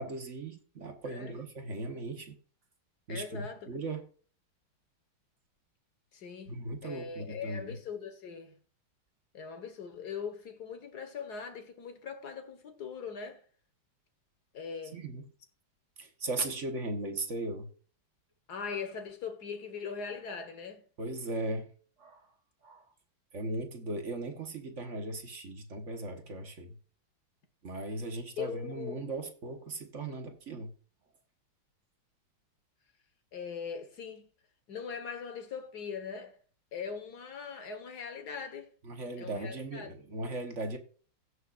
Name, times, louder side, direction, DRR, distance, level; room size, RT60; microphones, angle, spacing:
voice 1, 0.0-2.3 3.1-4.1 6.5-7.8 14.9-15.2 16.0-17.7 21.0-21.7 22.0-22.2 22.6-22.8 23.3-26.7 27.6-30.7 38.8-40.8, right 2 dB, 45° right, 1.4 m, -38 dB
voice 2, 1.1-1.4 3.1-3.7 6.1-8.6 9.3-13.4 14.5-15.1 18.5-20.8 28.4-29.0 33.3-34.3 34.7-36.4 36.7-38.7 39.2-39.9, left 6 dB, 55° left, 1.9 m, -41 dB
16.5 x 6.3 x 2.5 m
omnidirectional pair, 2.1 m